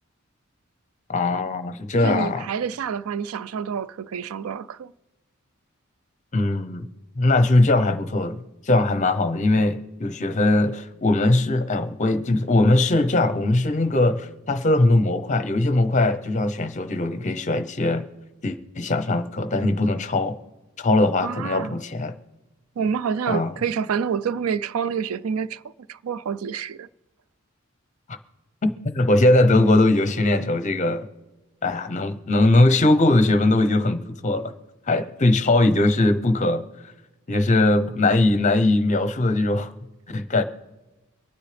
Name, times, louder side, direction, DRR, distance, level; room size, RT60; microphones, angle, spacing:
voice 1, 1.1-2.5 6.3-6.9 7.2-18.1 18.4-20.4 20.8-22.1 23.3-23.5 28.1-28.2 28.6-31.1 31.6-34.5 34.9-36.6 37.3-39.7 40.1-40.4, left 2 dB, 35° left, 0.7 m, -20 dB
voice 2, 2.0-4.9 21.2-21.8 22.8-26.9, right 7 dB, 85° right, 0.4 m, -28 dB
23.5 x 9.6 x 3.4 m
head